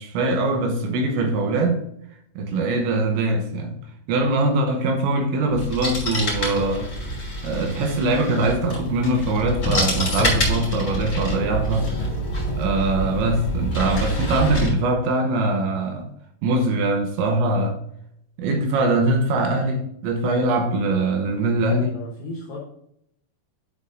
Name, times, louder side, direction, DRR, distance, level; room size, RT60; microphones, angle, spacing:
voice 1, 0.0-1.8 2.4-3.8 4.1-6.9 7.4-12.1 12.6-16.1 16.4-17.8 18.4-22.0, right 2 dB, 75° right, 3.0 m, -22 dB
sound 1, 5.5-14.7, equal, 30° left, 1.2 m, -26 dB
voice 2, 21.7-22.6, left 2 dB, 75° left, 2.1 m, -36 dB
11.0 x 5.3 x 2.6 m
omnidirectional pair, 5.7 m